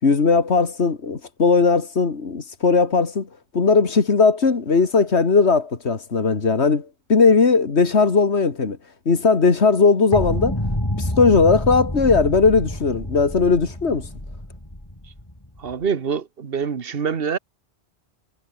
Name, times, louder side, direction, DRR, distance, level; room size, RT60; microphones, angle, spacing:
voice 1, 0.0-3.3 3.5-8.8 9.1-10.6 11.0-14.1, left 4 dB, 90° left, 2.3 m, -18 dB
sound 1, 10.1-15.8, left 1 dB, 20° left, 4.6 m, -28 dB
voice 2, 15.6-17.4, right 6 dB, 60° right, 1.5 m, -25 dB
omnidirectional pair, 1.1 m